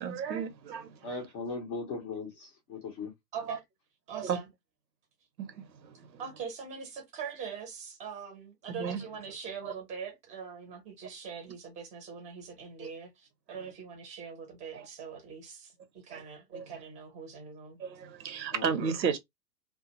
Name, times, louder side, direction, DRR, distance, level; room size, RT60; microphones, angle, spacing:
voice 1, 0.0-1.1 3.5-3.6 4.1-4.4 5.4-6.2 8.8-9.0 9.6-9.7 12.8-12.9 14.7-14.9 16.1-16.2 16.5-16.7 17.8-19.2, right 6 dB, 85° right, 0.9 m, -34 dB
voice 2, 1.0-3.1 18.5-18.8, left 3 dB, 20° left, 0.5 m, -38 dB
voice 3, 4.1-4.5 6.2-17.8, right 6 dB, 15° right, 0.7 m, -42 dB
2.3 x 2.3 x 2.8 m
hypercardioid pair, 130°, 50 cm